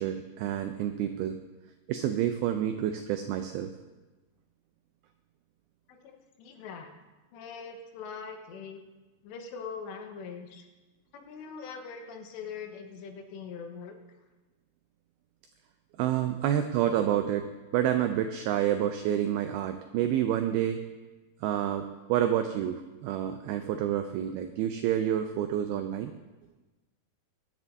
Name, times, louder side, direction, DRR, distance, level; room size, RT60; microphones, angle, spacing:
voice 1, 0.0-1.4 1.9-3.7 16.0-20.9 21.4-26.1, right 10 dB, 90° right, 7 dB, 2.2 m, -29 dB
voice 2, 5.9-6.9 7.3-8.8 9.2-10.7 11.1-14.0, left 5 dB, 85° left, 3 dB, 3.3 m, -42 dB
21.5 x 9.8 x 2.7 m, 1.2 s
omnidirectional pair, 5.0 m